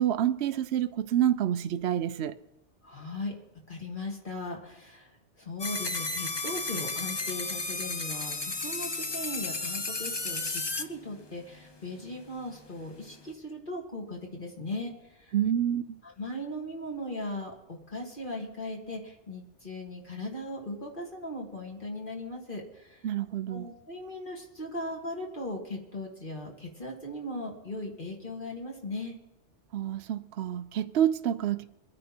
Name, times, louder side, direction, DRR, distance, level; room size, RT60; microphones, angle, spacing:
voice 1, 0.0-2.3 15.3-16.0 23.0-23.7 29.7-31.6, right 10 dB, 65° right, 0.9 m, -28 dB
voice 2, 2.8-3.3 3.7-15.3 16.0-23.1 23.5-29.2, left 1 dB, 45° left, 2.8 m, -38 dB
sound 1, 5.6-10.8, left 3 dB, 25° left, 0.7 m, -33 dB
23.0 x 9.7 x 4.4 m
omnidirectional pair, 1.2 m